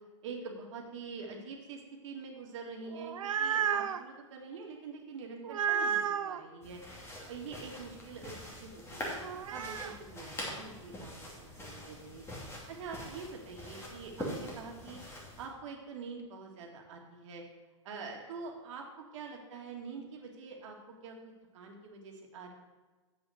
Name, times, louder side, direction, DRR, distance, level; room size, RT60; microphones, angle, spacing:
voice 1, 0.2-6.8 7.3-9.1 9.5-12.2 12.7-15.0 15.4-17.4 17.8-18.9 19.1-20.8 21.0-22.5, right 4 dB, 65° right, 1 dB, 2.2 m, -45 dB
sound 1, 2.9-4.0 5.4-6.4 9.2-9.9, right 8 dB, 90° right, 0.6 m, -32 dB
sound 2, 6.6-15.5, left 1 dB, 15° left, 2.7 m, -44 dB
8.1 x 7.1 x 6.4 m, 1.3 s
hypercardioid pair, 125°, 17 cm